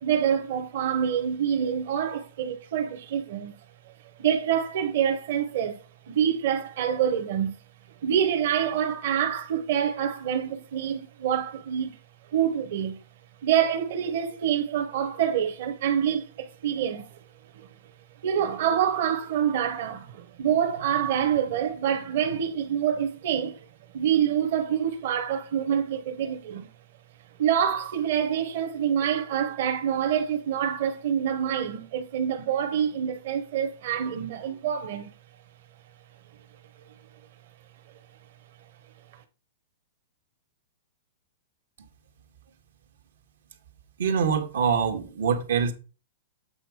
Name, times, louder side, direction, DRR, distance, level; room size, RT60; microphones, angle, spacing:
voice 1, 0.0-3.5 4.2-5.8 6.1-7.5 8.0-12.0 12.3-13.0 13.4-17.1 17.6-17.7 18.2-23.7 23.9-26.7 27.4-35.1, right 9 dB, 55° right, 1.0 m, -26 dB
voice 2, 44.0-45.7, right 6 dB, 85° right, 1.5 m, -24 dB
7.9 x 4.0 x 4.8 m
supercardioid pair, 165°, 0 cm